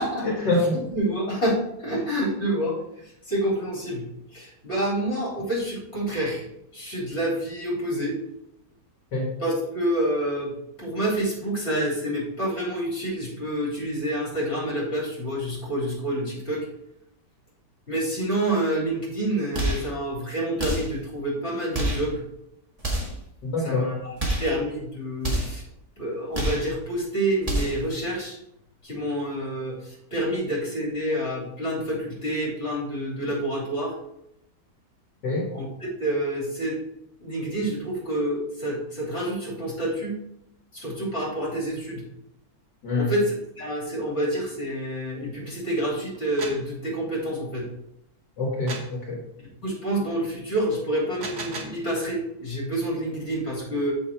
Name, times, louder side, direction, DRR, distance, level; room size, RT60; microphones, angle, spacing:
voice 1, 0.2-0.8 9.1-9.3 23.4-23.9 35.2-35.5 42.8-43.1 48.4-49.2, left 2 dB, 75° left, -2 dB, 2.2 m, -25 dB
voice 2, 0.9-2.8 3.3-4.0 4.3-6.4 6.7-8.2 9.4-10.5 10.8-16.7 17.9-22.2 23.6-24.1 24.4-25.6 26.0-28.4 28.8-33.9 35.5-35.7 36.0-36.8 37.2-40.2 40.7-42.0 43.0-47.7 49.6-53.9, right 1 dB, 40° left, -5 dB, 3.8 m, -28 dB
sound 1, 19.5-19.9 20.6-21.0 21.7-22.1 22.8-23.2 24.2-24.5 25.2-25.6 26.3-26.7 27.4-27.8, right 1 dB, 20° right, 2.0 m, -27 dB
sound 2, 46.1-46.7 48.7-49.0 51.0-51.8, right 3 dB, 75° right, 1.9 m, -36 dB
7.1 x 6.4 x 4.4 m, 0.81 s
omnidirectional pair, 1.8 m